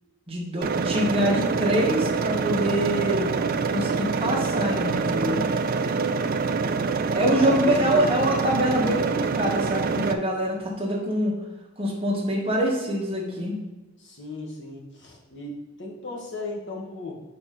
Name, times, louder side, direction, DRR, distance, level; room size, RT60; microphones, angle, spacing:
voice 1, 0.3-3.3 3.7-5.4 7.1-11.3 11.8-13.5, equal, 25° right, -3 dB, 1.5 m, -25 dB
sound 1, 0.6-10.1, right 4 dB, 40° right, 0.3 m, -25 dB
voice 2, 7.3-8.0 14.0-17.2, left 2 dB, 55° left, -1 dB, 1.5 m, -36 dB
5.0 x 4.4 x 5.9 m, 1.2 s
head